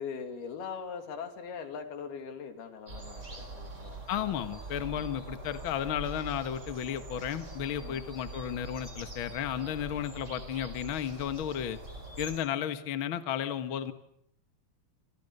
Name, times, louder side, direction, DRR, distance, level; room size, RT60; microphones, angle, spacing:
voice 1, 0.0-4.0 7.7-8.0, left 6 dB, 80° left, 7 dB, 4.4 m, -41 dB
sound 1, 2.9-12.4, right 2 dB, 20° right, 4.9 m, -43 dB
voice 2, 4.1-11.8 12.2-13.9, left 9 dB, 55° left, 10 dB, 1.5 m, -33 dB
28.0 x 27.0 x 6.7 m, 0.71 s
omnidirectional pair, 4.4 m